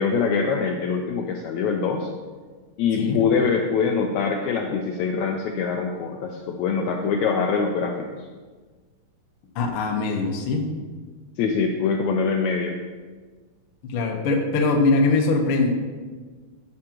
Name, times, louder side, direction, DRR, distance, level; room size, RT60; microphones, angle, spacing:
voice 1, 0.0-2.1 2.8-8.3 11.4-12.8, left 5 dB, 75° left, 2 dB, 1.8 m, -24 dB
voice 2, 9.5-10.6 13.8-15.7, left 3 dB, 60° left, 1 dB, 1.6 m, -22 dB
12.0 x 7.5 x 3.0 m, 1.4 s
omnidirectional pair, 3.6 m